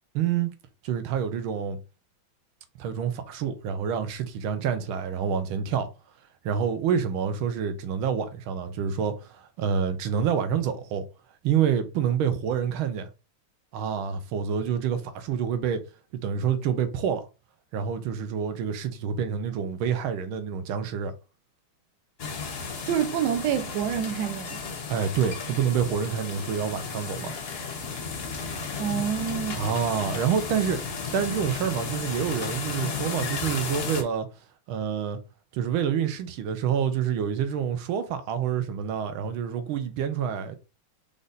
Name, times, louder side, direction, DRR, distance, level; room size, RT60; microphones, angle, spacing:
voice 1, 0.1-0.5 0.8-1.8 2.8-5.9 6.4-11.0 11.4-13.1 13.7-15.8 16.2-17.2 17.7-21.1 24.9-27.3 29.6-34.3 34.7-35.2 35.5-40.6, right 7 dB, 90° right, 1.6 m, -27 dB
sound 1, 22.2-34.0, left 5 dB, 60° left, 0.6 m, -34 dB
voice 2, 22.9-24.6 28.8-29.6, right 9 dB, 65° right, 1.1 m, -27 dB
5.2 x 2.5 x 4.0 m
omnidirectional pair, 2.2 m